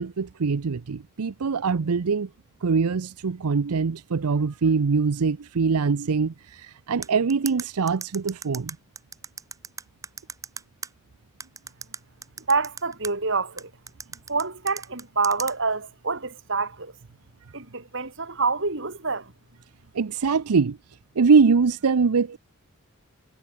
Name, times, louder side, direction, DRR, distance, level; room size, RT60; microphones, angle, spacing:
voice 1, 0.0-2.3 2.6-8.8 19.9-20.8 21.2-22.4, right 5 dB, 90° right, 0.6 m, -23 dB
sound 1, 7.0-10.9 11.4-13.1 13.6-15.5, right 5 dB, 15° right, 0.8 m, -36 dB
voice 2, 12.5-13.7 14.3-16.9 17.5-19.3, right 4 dB, 55° right, 2.9 m, -27 dB
head